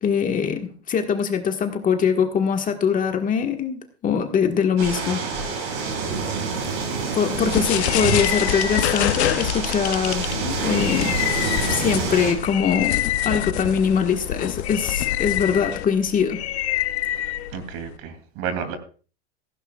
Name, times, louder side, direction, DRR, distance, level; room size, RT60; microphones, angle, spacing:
voice 1, 0.0-5.2 7.1-11.1 11.7-16.4, left 7 dB, 25° left, 5 dB, 1.6 m, -22 dB
sound 1, 4.8-12.3, right 4 dB, 65° right, 7.2 m, -27 dB
sound 2, 7.3-18.0, left 13 dB, 75° left, 0.9 m, -26 dB
voice 2, 17.5-18.8, right 7 dB, 50° right, 9 dB, 2.9 m, -31 dB
16.0 x 15.5 x 2.4 m, 0.39 s
hypercardioid pair, 120°, 33 cm